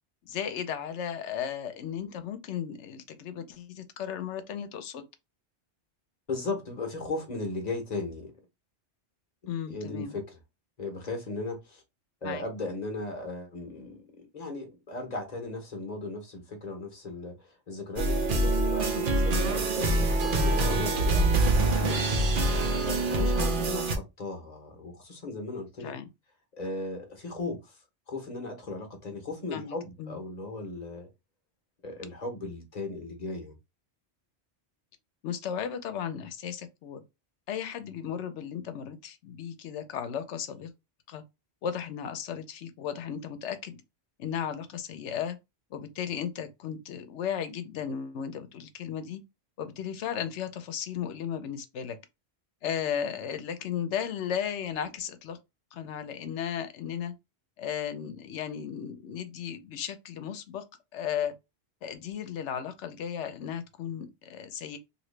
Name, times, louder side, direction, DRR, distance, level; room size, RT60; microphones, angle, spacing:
voice 1, 0.3-5.0 9.5-10.2 12.2-12.4 21.8-22.1 25.8-26.1 29.5-30.2 35.2-37.0 37.5-40.7 41.1-41.2 41.6-43.8 44.2-45.4 45.7-49.2 49.6-52.0 52.6-55.4 55.7-57.1 57.6-60.6 60.9-61.3 61.8-64.8, left 8 dB, 80° left, 0.9 m, -35 dB
voice 2, 6.3-8.3 9.7-10.4 10.8-11.8 12.2-14.0 14.3-22.0 22.8-25.9 26.5-27.8 28.1-31.1 31.8-33.5, left 2 dB, 40° left, 1.0 m, -37 dB
sound 1, 18.0-24.0, right 2 dB, 55° right, 0.8 m, -25 dB
3.0 x 2.7 x 3.1 m
omnidirectional pair, 1.2 m